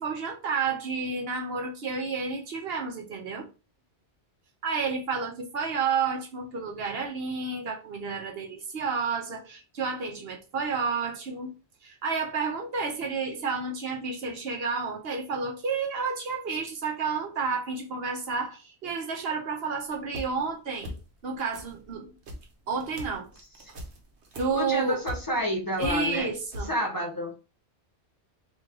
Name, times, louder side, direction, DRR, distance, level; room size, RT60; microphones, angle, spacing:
voice 1, 0.0-3.5 4.6-11.5 11.8-20.9 21.2-22.1 22.7-23.3 24.4-25.0 25.8-26.7, right 5 dB, 65° right, 0.9 m, -30 dB
sound 1, 19.9-20.5 20.8-21.2 21.5-25.5 25.8-26.7, left 1 dB, 80° right, 1.1 m, -40 dB
voice 2, 24.5-26.3 26.6-27.3, equal, 20° left, 0.9 m, -29 dB
3.1 x 2.7 x 3.6 m
omnidirectional pair, 1.1 m